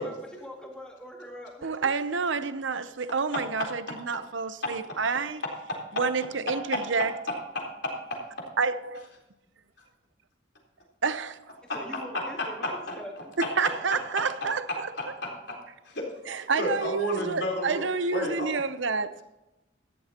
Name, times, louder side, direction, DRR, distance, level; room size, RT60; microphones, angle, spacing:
voice 1, 0.0-1.9 11.7-13.1, equal, 5° left, 2.2 m, -42 dB
voice 2, 1.6-5.4 6.0-7.1 8.6-9.1 11.0-11.4 13.4-14.9 16.3-19.2, right 4 dB, 75° right, 0.7 m, -29 dB
voice 3, 3.3-3.7 7.5-7.7 11.7-13.7 14.2-14.3 14.7-15.6 15.8-17.8 18.1-18.5, left 1 dB, 60° left, 3.9 m, -32 dB
14.0 x 11.5 x 2.9 m
head